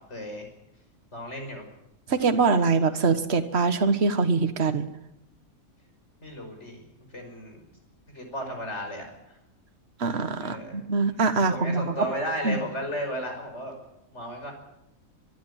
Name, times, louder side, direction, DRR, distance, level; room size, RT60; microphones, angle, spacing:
voice 1, 0.1-0.5 1.1-1.6 6.2-6.8 7.1-7.6 8.1-9.1 10.4-10.8 11.4-13.8 14.1-14.5, equal, 55° left, 3 dB, 5.7 m, -34 dB
voice 2, 2.1-4.9 10.0-11.9 12.4-12.6, right 4 dB, 50° right, 8 dB, 1.7 m, -23 dB
23.5 x 12.5 x 9.9 m, 0.85 s
omnidirectional pair, 1.4 m